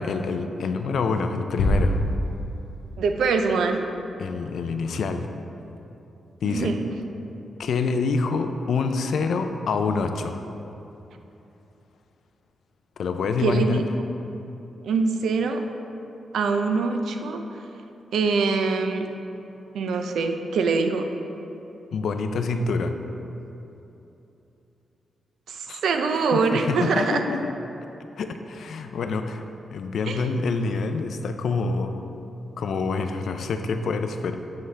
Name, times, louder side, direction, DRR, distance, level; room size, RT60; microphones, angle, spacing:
voice 1, 0.0-2.0 4.2-5.3 6.4-6.7 7.6-10.4 13.0-13.8 21.9-23.0 25.7-27.5 28.2-29.4 29.7-32.1 32.6-34.4, left 4 dB, 70° left, 7 dB, 0.4 m, -26 dB
sound 1, 1.6-3.2, equal, 90° left, 1.2 m, -25 dB
voice 2, 3.0-3.9 6.4-6.9 13.4-14.1 14.8-15.7 16.3-17.6 18.1-19.1 19.7-21.1 25.5-27.2 30.1-30.2, right 4 dB, 90° right, 6 dB, 0.4 m, -24 dB
7.4 x 5.6 x 3.3 m, 2.9 s
wide cardioid pair, 140°, 0 cm